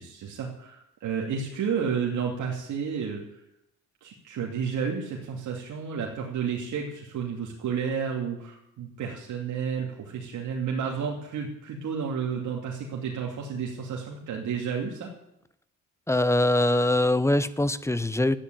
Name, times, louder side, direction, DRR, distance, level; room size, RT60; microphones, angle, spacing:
voice 1, 0.0-3.4 4.0-15.1, right 6 dB, 70° right, -1 dB, 2.7 m, -31 dB
voice 2, 16.1-18.4, left 1 dB, 10° left, 15 dB, 0.9 m, -23 dB
13.5 x 10.0 x 9.3 m, 0.81 s
cardioid pair, 90°, 30 cm